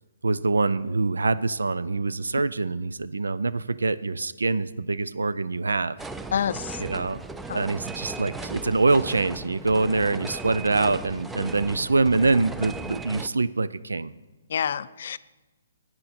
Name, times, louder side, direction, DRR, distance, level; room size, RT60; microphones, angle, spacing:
voice 1, 0.2-6.0 6.8-7.2 7.5-14.1, right 3 dB, 90° right, 18 dB, 0.4 m, -24 dB
sound 1, 6.0-13.3, right 3 dB, 5° right, 0.4 m, -37 dB
voice 2, 6.3-6.8 7.5-7.6 14.5-15.2, left 8 dB, 60° left, 16 dB, 0.4 m, -27 dB
13.0 x 9.1 x 4.2 m, 1.2 s
hypercardioid pair, 140°, 0 cm